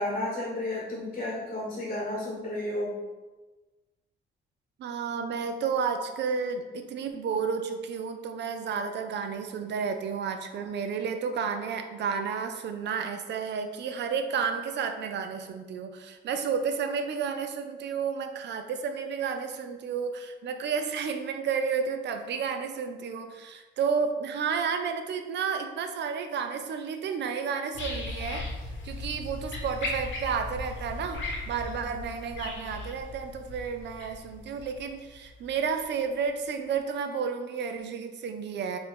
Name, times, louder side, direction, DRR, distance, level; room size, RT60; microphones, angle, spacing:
voice 1, 0.0-2.9, left 1 dB, 35° left, -4 dB, 1.0 m, -32 dB
voice 2, 4.8-28.4 28.8-38.8, right 6 dB, 60° right, 7 dB, 0.5 m, -31 dB
sound 1, 27.7-35.9 36.4-36.5, left 2 dB, 70° left, 0.9 m, -37 dB
4.4 x 2.6 x 3.6 m, 1.2 s
cardioid pair, 90°, 20 cm